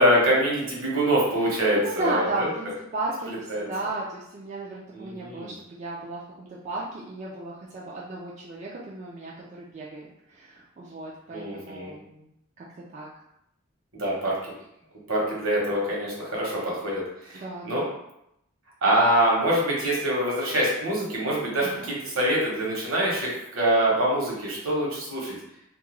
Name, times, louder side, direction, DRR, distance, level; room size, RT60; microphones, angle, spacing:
voice 1, 0.0-2.5 3.3-3.6 4.9-5.5 11.3-11.9 13.9-14.4 15.1-17.8 18.8-25.3, right 1 dB, 65° right, -4 dB, 0.9 m, -25 dB
voice 2, 1.5-2.7 2.9-12.3 12.6-13.1 17.3-17.9 21.6-21.9, right 2 dB, 35° right, -5 dB, 0.3 m, -34 dB
2.3 x 2.2 x 3.0 m, 0.80 s
head